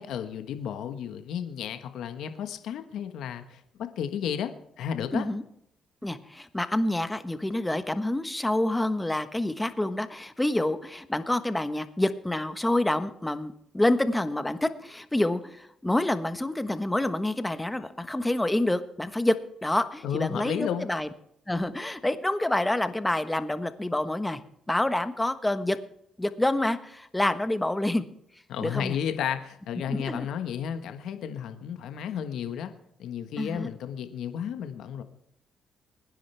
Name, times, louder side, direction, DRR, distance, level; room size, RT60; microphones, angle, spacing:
voice 1, 0.0-4.5 4.8-5.2 20.0-20.9 28.5-32.7 33.0-35.0, left 8 dB, 80° left, 8 dB, 1.3 m, -33 dB
voice 2, 5.1-5.4 6.0-19.3 19.6-21.1 21.5-24.4 24.7-25.8 26.2-28.0 28.6-29.0 29.9-30.3 33.4-33.7, left 1 dB, 10° left, 10 dB, 1.2 m, -27 dB
22.5 x 10.0 x 3.4 m, 0.74 s
cardioid pair, 90°, 0 cm